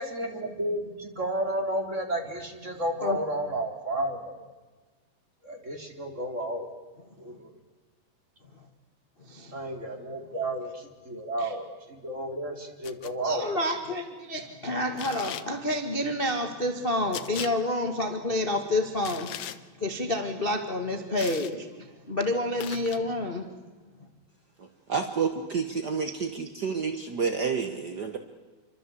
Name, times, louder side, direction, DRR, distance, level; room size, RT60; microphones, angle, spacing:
voice 1, 0.0-4.4 5.4-6.7 7.2-7.6 9.5-13.5, right 1 dB, 20° right, 4 dB, 3.5 m, -32 dB
voice 2, 9.2-9.6 11.4-11.5 13.2-23.5, left 1 dB, 25° left, 5 dB, 1.4 m, -29 dB
sound 1, 12.8-13.1 15.0-15.5 17.1-17.5 19.0-19.6 21.2-21.5 22.6-23.0, left 11 dB, 65° left, 1.9 m, -38 dB
voice 3, 24.6-28.2, right 5 dB, 55° right, 6 dB, 1.1 m, -30 dB
28.0 x 24.5 x 8.4 m, 1.3 s
omnidirectional pair, 4.1 m